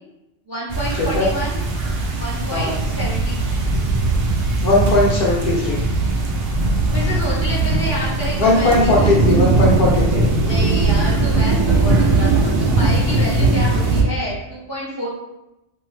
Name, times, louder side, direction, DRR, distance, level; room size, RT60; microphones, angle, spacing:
voice 1, 0.5-1.6 2.2-3.6 6.9-8.7 9.0-9.2 10.4-15.1, equal, 20° right, -7 dB, 0.5 m, -28 dB
sound 1, 0.7-14.0, right 2 dB, 65° right, 0.7 m, -19 dB
voice 2, 1.0-1.3 2.5-2.7 4.6-5.8 8.4-10.2, left 2 dB, 60° left, -3 dB, 0.7 m, -18 dB
2.6 x 2.2 x 3.1 m, 0.92 s
omnidirectional pair, 1.2 m